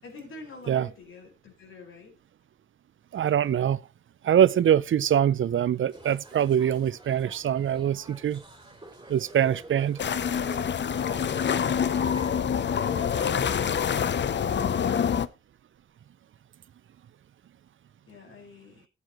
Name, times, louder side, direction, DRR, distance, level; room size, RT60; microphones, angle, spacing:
voice 1, 0.0-2.1 18.1-18.9, left 4 dB, 90° left, 5.1 m, -47 dB
voice 2, 3.1-3.8 4.2-8.4 9.1-10.0, right 9 dB, 75° right, 0.5 m, -23 dB
sound 1, 5.9-13.8, right 2 dB, 20° right, 2.5 m, -47 dB
sound 2, 10.0-15.3, left 7 dB, 60° left, 0.6 m, -26 dB
14.5 x 8.3 x 3.0 m
cardioid pair, 85°, 20 cm